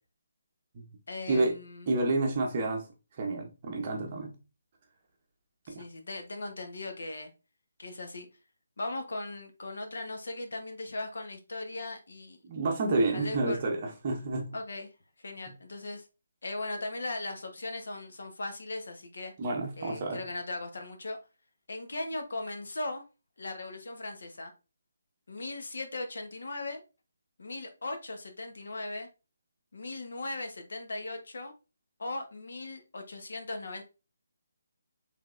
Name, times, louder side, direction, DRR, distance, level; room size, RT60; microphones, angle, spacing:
voice 1, 1.1-1.9 5.7-7.3 7.8-8.3 8.8-12.4 13.1-13.6 14.5-14.9 15.2-16.1 16.4-19.3 19.8-21.2 21.7-23.0 23.4-24.5 25.3-26.8 27.4-29.1 29.7-31.5 32.0-33.8, left 2 dB, 60° left, 1.0 m, -38 dB
voice 2, 1.9-2.9 3.2-4.4 5.7-5.8 12.4-14.5 19.4-20.2, right 2 dB, 25° right, 0.7 m, -29 dB
5.1 x 3.4 x 2.5 m
hypercardioid pair, 180°, 0 cm